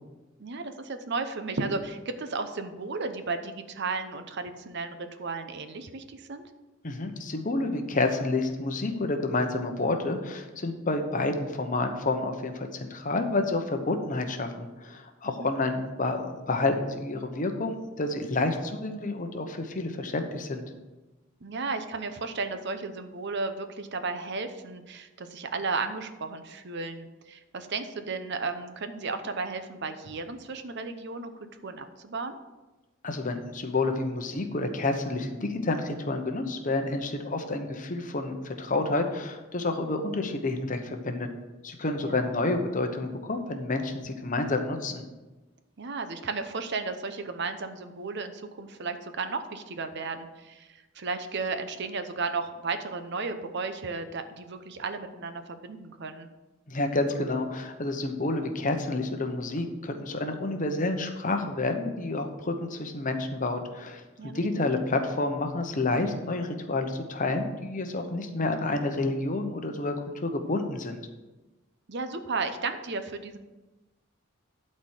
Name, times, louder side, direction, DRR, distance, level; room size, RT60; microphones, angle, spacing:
voice 1, 0.4-6.5 15.2-15.5 21.4-32.4 42.0-42.3 45.8-56.3 64.2-64.7 71.9-73.4, right 4 dB, 55° right, 9 dB, 0.7 m, -34 dB
voice 2, 6.8-20.6 33.0-41.3 41.6-45.0 56.7-71.0, left 2 dB, 40° left, 6 dB, 0.9 m, -29 dB
12.0 x 4.4 x 6.4 m, 1.1 s
head